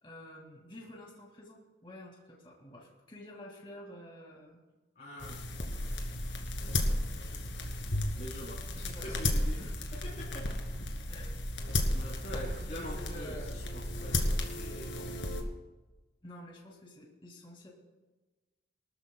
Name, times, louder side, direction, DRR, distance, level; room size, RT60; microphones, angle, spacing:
voice 1, 0.0-4.6 8.8-9.2 9.6-9.9 11.1-11.4 12.4-13.6 16.2-17.7, left 1 dB, 30° left, -2 dB, 2.3 m, -49 dB
voice 2, 5.0-6.0 7.1-9.6 9.9-10.5 11.9-15.2, equal, 55° left, -9 dB, 3.9 m, -45 dB
sound 1, 5.2-15.4, left 1 dB, 80° left, 2.2 m, -34 dB
24.0 x 13.5 x 2.3 m, 1.2 s
head